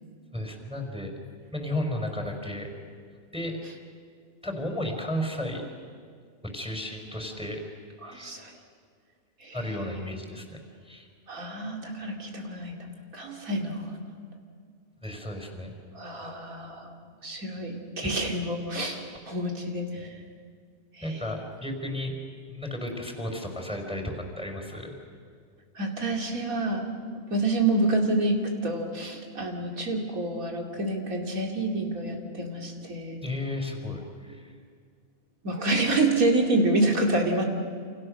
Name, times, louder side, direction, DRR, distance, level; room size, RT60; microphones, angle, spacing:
voice 1, 0.3-1.1 1.5-2.7 3.3-3.6 4.4-5.7 6.5-7.6 8.0-8.4 9.5-10.6 10.8-11.1 15.0-15.7 18.0-18.1 21.0-22.1 22.5-24.9 33.2-34.5, left 1 dB, 5° right, 3 dB, 4.8 m, -33 dB
voice 2, 8.0-8.6 9.4-9.6 11.3-12.8 13.1-14.0 15.9-16.9 17.2-20.2 20.9-21.2 25.7-26.9 27.3-33.2 35.4-37.4, right 2 dB, 85° right, 1 dB, 3.4 m, -28 dB
28.5 x 28.0 x 6.6 m, 2.1 s
omnidirectional pair, 1.4 m